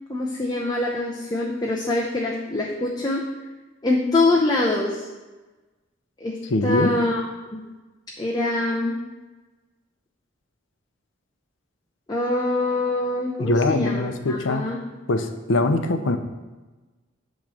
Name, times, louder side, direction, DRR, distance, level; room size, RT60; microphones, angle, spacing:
voice 1, 0.1-3.2 3.8-5.0 6.2-6.4 6.6-7.2 7.5-7.6 8.2-9.0 12.1-14.8, left 2 dB, 20° left, -3 dB, 0.7 m, -24 dB
voice 2, 6.5-6.9 13.4-14.6 15.1-16.2, left 2 dB, 70° left, 7 dB, 0.6 m, -22 dB
8.8 x 3.1 x 6.2 m, 1.2 s
head